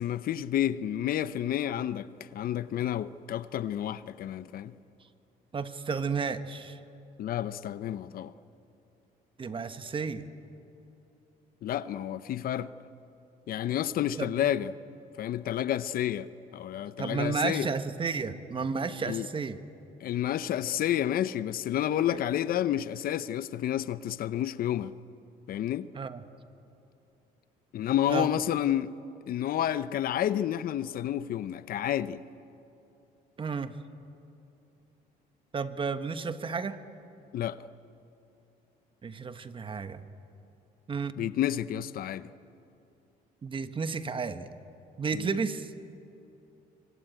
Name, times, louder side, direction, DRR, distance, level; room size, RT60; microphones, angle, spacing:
voice 1, 0.0-4.7 7.2-8.3 11.6-12.7 13.5-14.7 15.2-16.3 16.5-17.7 19.1-19.3 20.0-24.9 25.5-25.9 27.7-28.9 29.3-32.2 37.3-37.6 41.2-42.3 45.1-45.4, left 11 dB, 60° left, 0.8 m, -30 dB
voice 2, 5.5-6.8 9.4-10.3 14.2-14.5 17.0-19.6 25.9-26.2 28.1-28.3 33.4-33.7 35.5-36.8 39.0-40.0 40.9-41.2 43.4-44.5 45.0-45.7, right 5 dB, 30° right, 1.3 m, -32 dB
25.0 x 25.0 x 9.1 m
cardioid pair, 110°, 17 cm